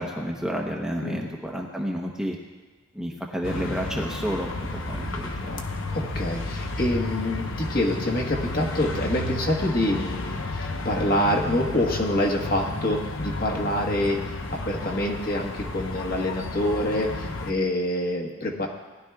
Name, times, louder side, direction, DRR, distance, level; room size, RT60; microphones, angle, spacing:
voice 1, 0.0-2.4 2.9-5.7, equal, 5° right, -1 dB, 0.9 m, -30 dB
sound 1, 3.4-17.5, left 2 dB, 70° left, 1.0 m, -32 dB
voice 2, 5.9-14.2 14.5-18.7, left 1 dB, 45° left, 0 dB, 1.4 m, -26 dB
19.0 x 11.5 x 2.4 m, 1.3 s
head